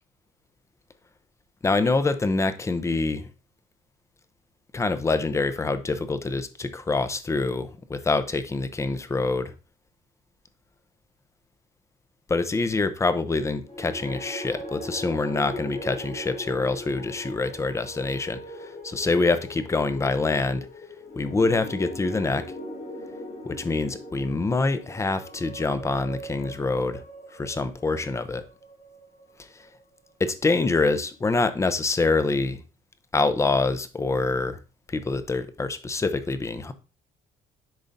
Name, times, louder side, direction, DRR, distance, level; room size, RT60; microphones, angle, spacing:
voice 1, 1.6-3.3 4.7-9.5 12.3-20.7 21.2-22.5 23.5-27.0 27.3-28.4 29.4-29.5 30.2-32.6 33.1-34.6 34.9-36.7, left 3 dB, 15° left, 0.6 m, -25 dB
sound 1, 13.6-29.9, left 1 dB, 70° left, 4.0 m, -40 dB
10.5 x 3.9 x 2.6 m
cardioid pair, 110°, 17 cm